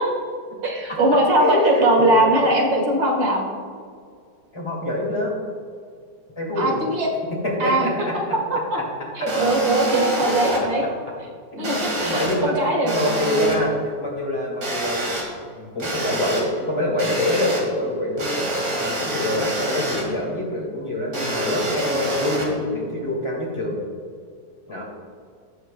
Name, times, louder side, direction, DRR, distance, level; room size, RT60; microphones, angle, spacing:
voice 1, 0.6-3.4 6.6-7.2 7.6-7.9 8.5-8.8 9.2-10.8 11.6-12.9, right 1 dB, 85° right, -1 dB, 2.3 m, -20 dB
voice 2, 1.4-2.5 4.5-5.3 6.4-6.9 7.4-8.2 10.2-10.3 10.6-10.9 11.5-15.1 15.6-18.4 18.8-23.8 24.7-24.8, left 1 dB, 15° left, -3 dB, 2.1 m, -25 dB
sound 1, 9.3-10.6 11.6-12.4 12.9-13.6 14.6-15.2 15.8-16.4 17.0-17.6 18.2-20.0 21.1-22.4, right 1 dB, 65° right, 2.6 m, -26 dB
17.5 x 6.4 x 2.2 m, 2.1 s
omnidirectional pair, 1.9 m